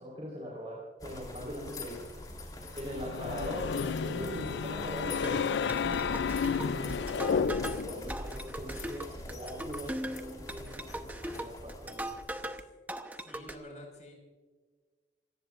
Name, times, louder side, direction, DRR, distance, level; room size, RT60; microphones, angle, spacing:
voice 1, 0.0-2.0 2.8-6.0 6.6-12.1, equal, 35° right, -4 dB, 4.2 m, -41 dB
sound 1, 1.0-12.5, left 2 dB, 20° left, 3.2 m, -45 dB
sound 2, 2.8-8.0, left 6 dB, 80° left, 0.4 m, -32 dB
sound 3, 5.2-12.6 12.9-13.6, right 1 dB, 10° right, 0.9 m, -40 dB
voice 2, 12.3-12.6 13.1-14.1, left 1 dB, 40° left, 1 dB, 5.3 m, -50 dB
26.5 x 18.0 x 2.5 m, 1.4 s
head